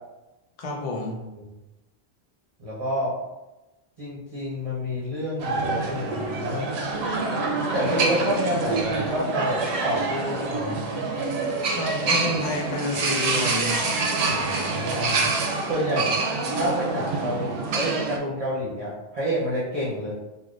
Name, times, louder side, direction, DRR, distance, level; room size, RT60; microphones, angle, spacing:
voice 1, 0.6-1.2 11.8-13.9, left 2 dB, 45° left, -1 dB, 0.6 m, -29 dB
voice 2, 2.6-3.1 4.0-6.8 7.7-10.8 14.3-15.2 15.7-20.1, equal, 40° right, -7 dB, 0.7 m, -29 dB
sound 1, 5.4-18.2, right 3 dB, 90° right, 0.8 m, -26 dB
3.4 x 2.4 x 2.4 m, 1.0 s
omnidirectional pair, 1.0 m